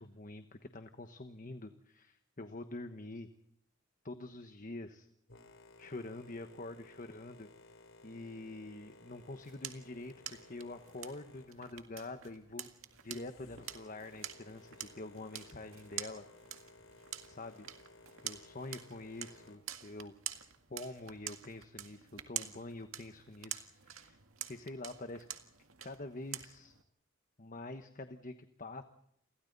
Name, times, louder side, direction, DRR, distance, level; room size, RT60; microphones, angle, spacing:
voice 1, 0.0-3.3 4.0-5.1 5.8-7.5 8.0-12.7 13.0-16.2 17.3-17.7 18.2-20.1 20.7-24.2 24.5-25.3 25.8-26.7 27.4-28.8, left 2 dB, 40° left, 8 dB, 1.2 m, -46 dB
Boat Water vehicle, 5.3-19.6, left 2 dB, 70° left, 3.5 m, -59 dB
sound 1, 9.1-26.8, right 11 dB, 90° right, 1.9 m, -47 dB
29.5 x 23.0 x 4.1 m, 0.72 s
head